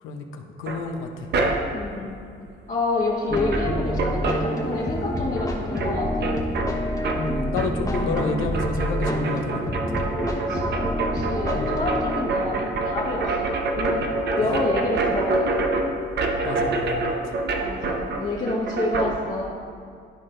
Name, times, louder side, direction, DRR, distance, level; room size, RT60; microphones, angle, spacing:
voice 1, 0.0-1.3 7.1-10.0 11.5-11.7 14.4-14.6 16.4-17.3, left 3 dB, 85° left, 4 dB, 0.8 m, -31 dB
sound 1, 0.7-1.9 2.9-3.0 3.3-5.1 5.4-19.1, right 3 dB, 60° right, 0.9 m, -27 dB
voice 2, 1.7-2.2 2.7-6.3 7.8-8.1 10.3-13.5 13.8-14.0 14.4-15.6 17.6-19.5, left 2 dB, 40° left, -5 dB, 1.3 m, -28 dB
sound 2, 3.3-12.0, left 1 dB, 15° left, 1.2 m, -28 dB
12.0 x 4.4 x 3.8 m, 2.2 s
cardioid pair, 90°, 20 cm